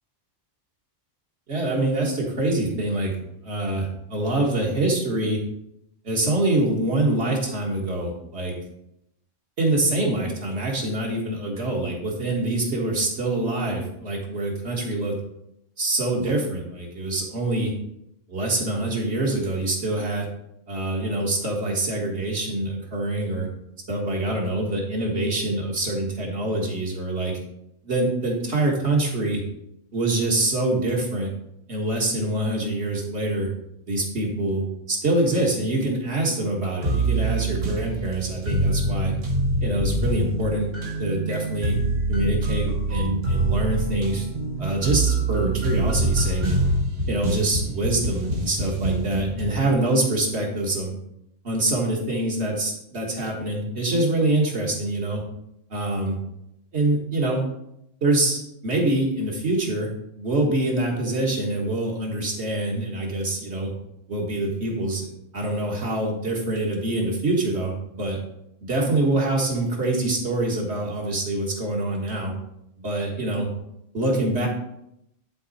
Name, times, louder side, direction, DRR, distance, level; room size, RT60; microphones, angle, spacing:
voice 1, 1.5-3.1 3.4-5.4 6.0-8.5 9.6-15.2 15.8-17.7 18.3-20.3 20.7-23.5 23.9-27.3 27.8-29.4 29.9-31.3 31.7-33.5 33.9-39.1 39.6-40.7 41.0-41.8 42.1-44.3 44.6-46.6 47.1-50.9 51.4-55.2 55.7-56.2 56.7-57.4 58.0-59.9 60.2-63.7 64.1-65.1 65.3-68.2 68.6-72.3 72.8-73.5 73.9-74.5, right 2 dB, 60° right, -1 dB, 1.9 m, -25 dB
sound 1, 36.8-49.6, right 2 dB, 80° right, 1.7 m, -25 dB
11.5 x 4.0 x 4.1 m, 0.81 s
omnidirectional pair, 1.3 m